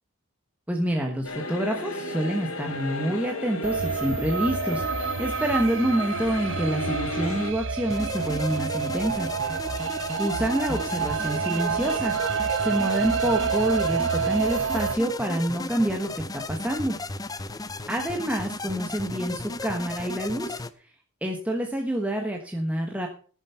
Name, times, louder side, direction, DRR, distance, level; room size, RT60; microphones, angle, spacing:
voice 1, 0.7-9.3 10.2-17.0 17.9-20.6 21.2-23.1, right 1 dB, 5° right, 2 dB, 1.2 m, -27 dB
sound 1, 1.2-7.5, left 1 dB, 80° left, 2.5 m, -34 dB
sound 2, 3.6-15.0, right 6 dB, 60° right, 1.0 m, -28 dB
sound 3, 7.9-20.7, left 2 dB, 15° left, 0.6 m, -35 dB
15.0 x 7.4 x 5.6 m, 0.41 s
head